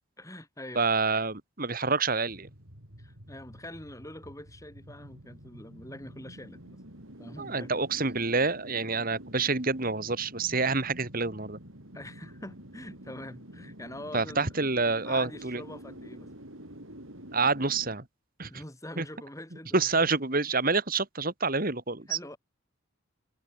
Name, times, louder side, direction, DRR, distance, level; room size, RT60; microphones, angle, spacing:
voice 1, 0.2-0.8 3.0-6.8 7.2-7.7 10.5-10.6 11.9-14.6 15.0-16.3 17.4-17.7 18.5-20.1 22.1-22.4, left 1 dB, 15° left, 6.4 m, -45 dB
voice 2, 0.8-2.5 7.4-11.6 14.1-15.6 17.3-18.0 18.4-18.5 19.0-19.1 19.7-22.2, right 4 dB, 45° right, 2.3 m, -27 dB
sound 1, 2.3-18.0, right 1 dB, 70° right, 7.7 m, -48 dB
head